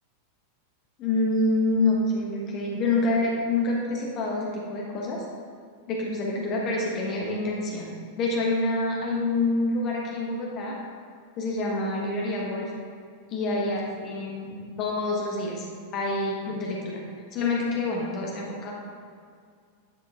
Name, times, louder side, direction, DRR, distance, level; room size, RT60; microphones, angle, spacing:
voice 1, 1.0-5.2 5.9-10.7 11.4-12.7 13.3-15.7 15.9-17.0 17.3-18.7, left 2 dB, 35° left, -2 dB, 1.4 m, -27 dB
10.0 x 4.5 x 3.7 m, 2.1 s
figure-of-eight pair, 90°, 0 cm